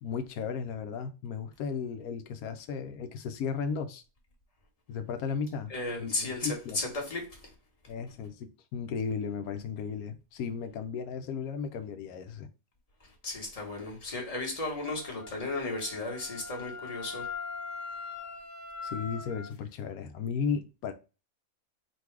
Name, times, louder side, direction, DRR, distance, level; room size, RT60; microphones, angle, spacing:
voice 1, 0.0-4.0 4.9-5.7 6.0-6.8 7.9-12.5 18.8-20.9, left 6 dB, 85° left, 1.1 m, -35 dB
voice 2, 5.7-7.5 13.0-17.3, left 2 dB, 25° left, 1.5 m, -35 dB
Wind instrument woodwind instrument, 14.8-19.5, left 4 dB, 65° left, 1.0 m, -41 dB
3.9 x 2.6 x 4.6 m
omnidirectional pair, 1.5 m